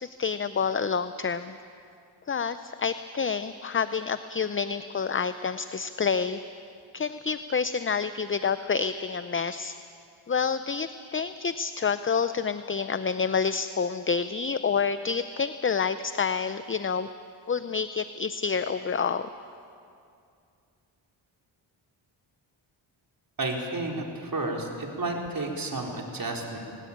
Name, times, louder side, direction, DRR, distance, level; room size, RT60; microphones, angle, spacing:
voice 1, 0.2-1.5 2.3-6.4 6.9-9.8 10.3-17.1 17.5-19.3, left 6 dB, 25° left, 12 dB, 0.6 m, -28 dB
voice 2, 23.4-26.6, right 2 dB, 45° right, 0 dB, 4.2 m, -31 dB
21.0 x 19.5 x 8.7 m, 2.4 s
cardioid pair, 70°, 48 cm